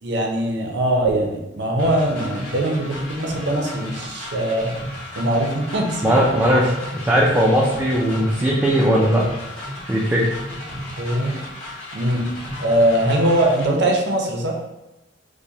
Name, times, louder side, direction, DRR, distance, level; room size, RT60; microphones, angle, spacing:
voice 1, 0.0-4.7 5.2-6.1 11.0-11.4 11.9-12.2 12.6-14.5, right 1 dB, 65° right, 1 dB, 0.6 m, -21 dB
sound 1, 1.8-13.6, left 1 dB, 65° left, 1.3 m, -34 dB
voice 2, 6.0-9.3 9.9-10.3, equal, 10° right, -4 dB, 0.4 m, -18 dB
4.8 x 2.2 x 2.7 m, 0.98 s
head